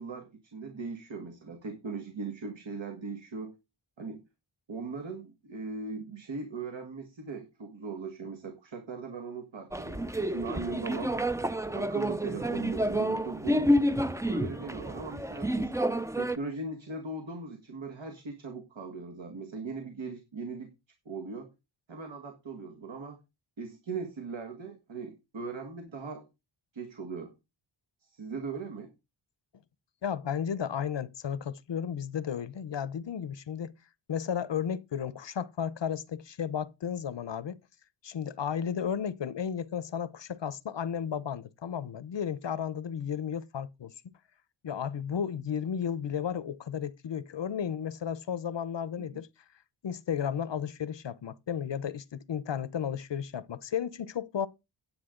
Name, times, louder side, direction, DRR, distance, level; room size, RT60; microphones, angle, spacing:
voice 1, 0.0-3.5 4.0-4.2 4.7-11.1 11.7-13.7 14.3-15.7 16.1-20.7 21.1-21.5 21.9-23.2 23.6-26.3 26.7-27.3 28.0-28.9 49.0-49.2, right 4 dB, 65° right, 2.0 m, -39 dB
sound 1, 9.7-16.4, equal, 5° right, 0.5 m, -29 dB
voice 2, 30.0-33.7 34.1-37.6 38.0-43.9 44.6-49.3 49.8-54.5, left 8 dB, 60° left, 0.8 m, -33 dB
9.9 x 9.2 x 3.8 m
wide cardioid pair, 95°, 48 cm